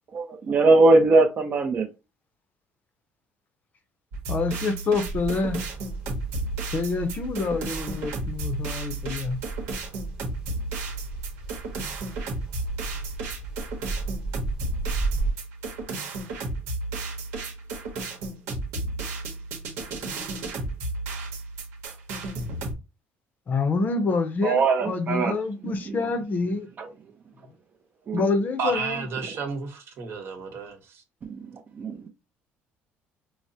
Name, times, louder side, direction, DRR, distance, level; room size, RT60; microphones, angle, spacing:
voice 1, 0.1-1.9 24.4-25.3 25.9-26.0 26.8-26.9 28.1-28.3 31.2-31.4 31.8-32.1, right 3 dB, 40° right, 0.5 m, -20 dB
sound 1, 4.1-22.7, right 2 dB, 90° right, 0.9 m, -33 dB
voice 2, 4.3-5.6 6.7-9.4 23.5-26.7 28.1-29.1, left 4 dB, 40° left, 0.6 m, -27 dB
sound 2, 5.0-15.3, right 3 dB, 15° right, 1.0 m, -34 dB
voice 3, 28.6-31.0, right 5 dB, 60° right, 1.0 m, -32 dB
4.6 x 2.0 x 2.7 m
cardioid pair, 120°, 5 cm